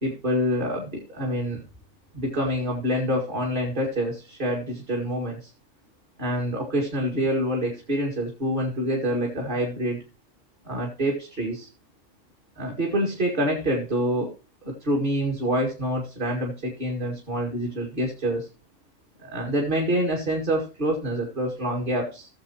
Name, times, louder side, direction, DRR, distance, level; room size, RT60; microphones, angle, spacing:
voice 1, 0.0-1.6 2.1-5.5 6.2-10.0 10.6-11.7 12.6-14.3 14.6-18.5 19.2-22.3, equal, 40° right, -2 dB, 2.3 m, -26 dB
17.0 x 7.3 x 3.0 m, 0.32 s
omnidirectional pair, 1.3 m